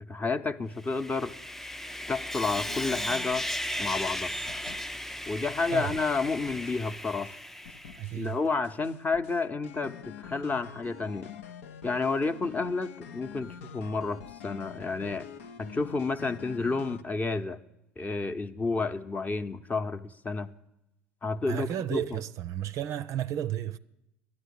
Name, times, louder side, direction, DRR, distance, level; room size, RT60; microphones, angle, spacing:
voice 1, 0.1-1.3 2.1-3.5 3.8-4.3 5.3-7.3 8.1-11.3 11.8-15.3 15.6-17.6 18.0-20.5 21.2-22.0, left 4 dB, 20° left, 0.8 m, -30 dB
Sawing, 0.8-8.2, equal, 5° left, 0.4 m, -36 dB
sound 1, 2.5-4.2 4.5-5.2 5.5-7.4 7.6-8.4 8.6-17.0, left 7 dB, 75° left, 0.6 m, -46 dB
voice 2, 8.0-8.4 21.5-23.8, right 11 dB, 50° right, 0.5 m, -32 dB
11.5 x 9.7 x 8.4 m
hypercardioid pair, 70°, 7 cm